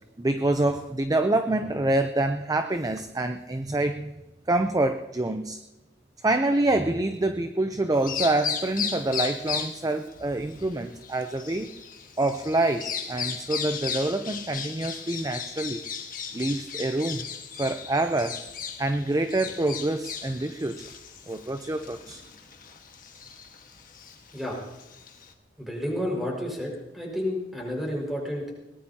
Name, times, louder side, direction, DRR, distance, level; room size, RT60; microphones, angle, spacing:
voice 1, 0.2-4.1 4.5-5.6 6.2-11.7 12.2-15.8 16.3-17.3 17.6-18.4 18.8-20.8 21.3-22.2, right 2 dB, 20° right, 7 dB, 0.6 m, -26 dB
Bird vocalization bird call bird song, 7.9-25.3, left 7 dB, 50° left, 1.6 m, -36 dB
voice 2, 25.6-28.5, left 1 dB, ahead, -2 dB, 5.4 m, -31 dB
21.5 x 20.0 x 2.9 m, 1.0 s
head